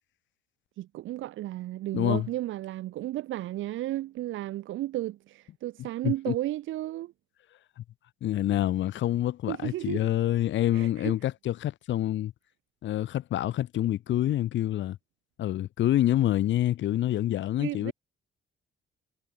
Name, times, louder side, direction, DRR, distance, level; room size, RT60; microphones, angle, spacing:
voice 1, 0.8-7.1 9.5-10.1 10.7-11.1 17.6-17.9, right 15 dB, 80° right, 0.9 m, -33 dB
voice 2, 1.9-2.3 5.8-6.3 7.8-7.9 8.2-12.3 12.8-15.0 15.4-17.9, left 13 dB, 70° left, 0.9 m, -27 dB
cardioid pair, 90°, 20 cm